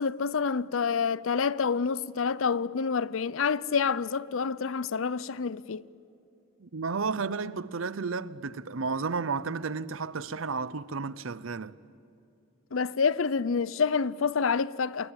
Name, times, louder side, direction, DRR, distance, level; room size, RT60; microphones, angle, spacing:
voice 1, 0.0-5.8 12.7-15.1, left 5 dB, 70° left, 0.6 m, -28 dB
voice 2, 6.6-11.8, right 4 dB, 75° right, 0.8 m, -32 dB
28.5 x 21.0 x 8.8 m
head